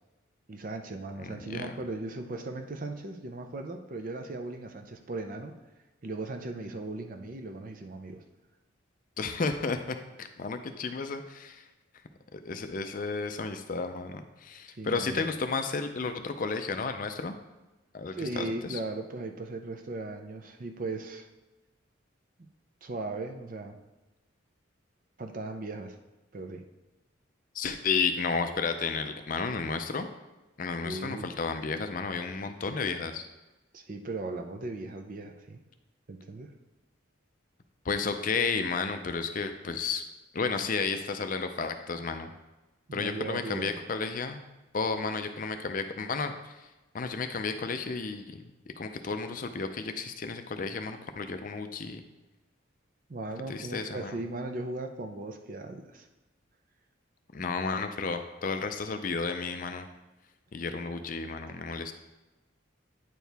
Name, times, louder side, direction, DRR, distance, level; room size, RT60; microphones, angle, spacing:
voice 1, 0.5-5.6 6.0-8.2 14.8-15.2 18.1-21.3 22.4-22.5 22.8-23.8 25.2-26.0 26.3-26.6 30.8-31.3 33.7-35.6 36.1-36.5 42.9-43.8 53.1-56.1, right 2 dB, 40° right, 5 dB, 0.5 m, -37 dB
voice 2, 1.2-1.7 9.2-11.7 12.3-17.4 17.9-18.8 27.5-30.1 30.6-33.3 37.8-40.0 40.3-42.3 42.9-44.4 44.7-46.7 46.9-48.5 48.8-52.0 53.5-54.2 57.3-59.9 60.5-61.9, left 4 dB, 40° left, 7 dB, 0.4 m, -32 dB
9.1 x 4.6 x 3.4 m, 1.1 s
head